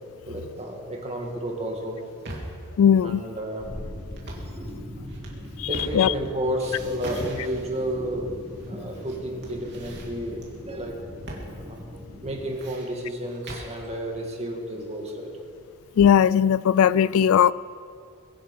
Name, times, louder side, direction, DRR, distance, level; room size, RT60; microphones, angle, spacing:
voice 1, 0.3-2.0 3.0-3.7 5.7-8.3 8.7-11.0 11.4-15.3, equal, 30° right, 1 dB, 2.3 m, -32 dB
sound 1, 1.9-2.7 4.1-4.6 5.1-6.3 6.6-7.9 8.6-9.2 9.4-10.5 11.3-11.5 11.8-11.9 12.3-13.8, right 1 dB, 50° right, 3.0 m, -38 dB
voice 2, 2.8-3.2 5.6-5.7 5.9-6.1 16.0-17.5, left 8 dB, 65° left, 20 dB, 0.3 m, -18 dB
sound 2, 3.6-12.5, equal, 5° right, 4.4 m, -40 dB
22.5 x 10.0 x 5.6 m, 2.3 s
head